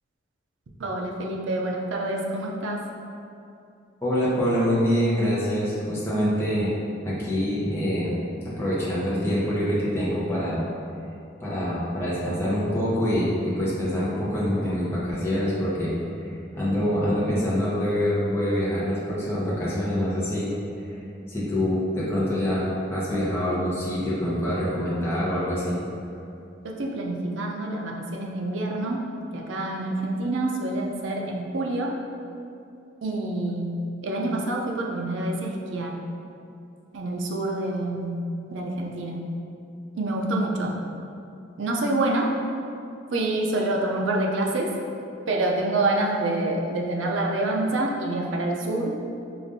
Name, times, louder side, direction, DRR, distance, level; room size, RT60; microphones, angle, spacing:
voice 1, 0.8-2.8 26.6-29.1 29.3-32.0 33.0-33.8 34.0-36.0 36.9-38.2 38.5-39.2 39.9-40.8 41.6-42.3 43.1-44.7 45.3-48.9, right 2 dB, 75° right, 0 dB, 0.5 m, -27 dB
voice 2, 4.0-6.7 7.0-8.1 8.4-10.7 11.4-15.9 16.2-20.5 20.8-21.0 21.3-25.8, equal, 15° left, -9 dB, 0.8 m, -25 dB
4.9 x 2.4 x 2.6 m, 2.6 s
head